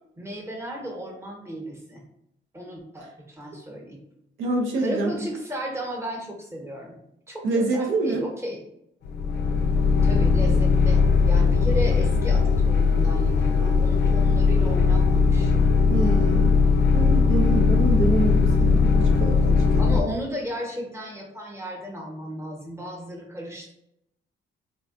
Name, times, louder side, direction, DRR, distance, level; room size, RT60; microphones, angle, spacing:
voice 1, 0.2-2.0 2.5-4.0 4.8-7.0 7.3-8.6 10.0-15.5 19.8-23.7, equal, 15° right, 0 dB, 0.9 m, -34 dB
voice 2, 4.4-5.1 7.4-8.3 15.9-16.6 16.9-20.1, right 2 dB, 80° right, 1 dB, 0.5 m, -26 dB
sound 1, 9.1-20.0, left 4 dB, 60° left, 0.4 m, -19 dB
3.6 x 2.2 x 2.4 m, 0.78 s
cardioid pair, 90°, 20 cm